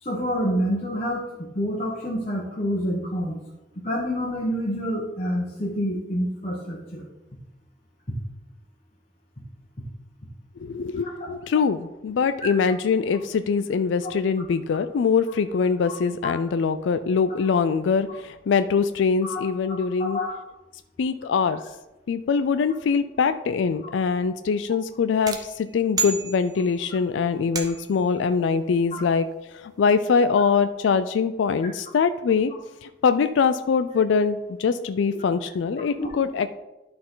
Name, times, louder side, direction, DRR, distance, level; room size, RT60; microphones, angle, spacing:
voice 1, 0.0-3.4 3.8-7.1 8.1-8.2 11.0-11.1 15.8-16.0 16.2-16.3 19.2-19.4 20.0-20.3 28.9-29.0 36.0-36.1, equal, 35° left, -6 dB, 1.3 m, -27 dB
voice 2, 10.6-20.2 21.0-21.6 22.1-29.3 29.5-32.5 32.8-36.5, left 5 dB, 85° left, 11 dB, 0.4 m, -23 dB
sound 1, 25.3-26.9 27.6-28.1, right 4 dB, 20° right, 0.8 m, -31 dB
11.5 x 4.3 x 3.9 m, 1.0 s
head